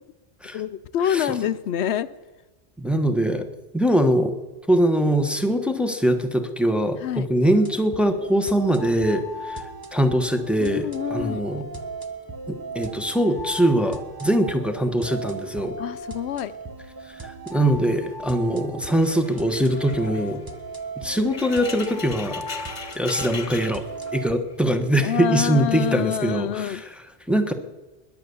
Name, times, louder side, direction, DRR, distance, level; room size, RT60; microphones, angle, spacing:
voice 1, 0.5-2.1 7.0-7.3 10.6-11.5 15.8-16.5 21.2-21.3 25.0-26.8, left 9 dB, 80° left, 15 dB, 0.9 m, -26 dB
voice 2, 2.8-3.5 3.7-4.3 4.7-9.6 9.9-11.6 12.5-15.8 17.2-20.4 21.0-22.4 22.9-23.9 24.1-27.5, right 1 dB, ahead, 6 dB, 1.2 m, -22 dB
sound 1, 7.5-24.4, right 2 dB, 20° right, 1.0 m, -37 dB
sound 2, 19.0-24.5 24.8-26.0 26.6-27.0, left 5 dB, 40° left, 1.2 m, -39 dB
20.5 x 8.0 x 7.0 m, 1.2 s
omnidirectional pair, 1.1 m